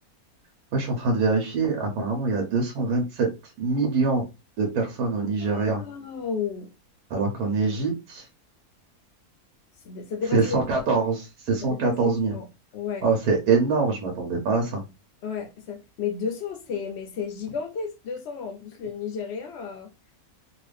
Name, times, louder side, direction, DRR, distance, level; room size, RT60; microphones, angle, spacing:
voice 1, 0.7-3.3 3.6-4.2 4.6-5.8 7.1-8.2 10.3-12.3 13.0-14.8, right 4 dB, 80° right, 1.3 m, -24 dB
voice 2, 5.4-6.7 9.8-10.8 11.6-12.5 12.7-13.1 15.2-19.9, left 6 dB, 60° left, 0.7 m, -33 dB
2.9 x 2.4 x 3.2 m
omnidirectional pair, 1.6 m